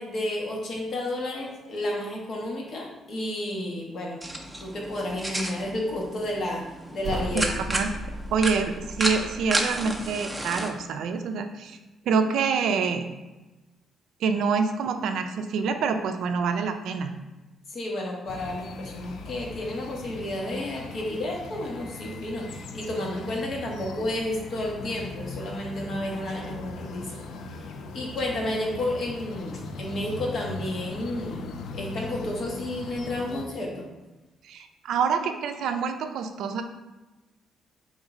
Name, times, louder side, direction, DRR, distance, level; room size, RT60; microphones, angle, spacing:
voice 1, 0.0-4.2 4.6-6.6 6.9-7.7 17.7-27.2 27.5-33.9, left 1 dB, 60° left, -1 dB, 1.0 m, -31 dB
sound 1, 4.2-10.7, right 1 dB, 5° right, 0.5 m, -32 dB
sound 2, 7.0-10.1, right 1 dB, 40° right, 0.9 m, -36 dB
voice 2, 7.3-7.9 8.3-11.8 12.1-13.0 14.2-17.1 34.4-36.6, right 5 dB, 75° right, 7 dB, 0.3 m, -26 dB
sound 3, 18.3-33.4, left 3 dB, 75° left, 0.3 m, -39 dB
3.6 x 2.4 x 4.0 m, 1.1 s
cardioid pair, 90°, 0 cm